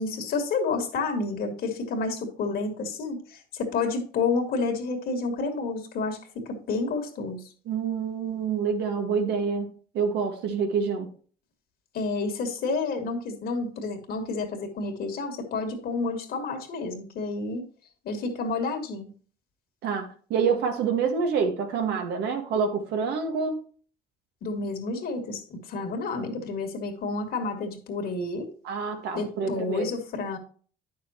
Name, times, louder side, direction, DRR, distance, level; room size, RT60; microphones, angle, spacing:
voice 1, 0.0-7.4 11.9-17.6 18.0-19.1 24.4-28.5 29.1-30.4, left 3 dB, 65° left, 4 dB, 2.3 m, -30 dB
voice 2, 7.7-9.7 9.9-11.1 19.8-23.7 28.6-29.9, right 6 dB, 80° right, 4 dB, 1.8 m, -27 dB
9.5 x 6.6 x 3.0 m, 0.42 s
cardioid pair, 110°, 17 cm